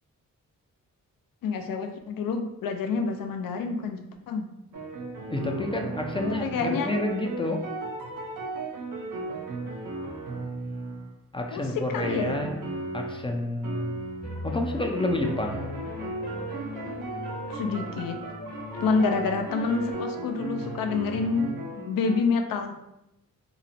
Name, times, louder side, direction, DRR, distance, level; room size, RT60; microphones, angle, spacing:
voice 1, 1.4-4.4 6.3-7.0 11.5-12.4 17.5-18.2 18.8-22.8, left 4 dB, 70° left, 5 dB, 0.5 m, -28 dB
sound 1, 4.7-11.2 12.0-13.4 13.6-14.3 15.0-22.2, right 3 dB, 65° right, 0.6 m, -36 dB
voice 2, 5.3-7.6 11.3-12.6 12.9-14.0 14.4-15.6, left 2 dB, 15° left, 2 dB, 0.4 m, -29 dB
sound 2, 14.2-19.9, left 1 dB, 50° left, 1.0 m, -38 dB
2.9 x 2.0 x 2.6 m, 0.86 s
supercardioid pair, 50°, 35 cm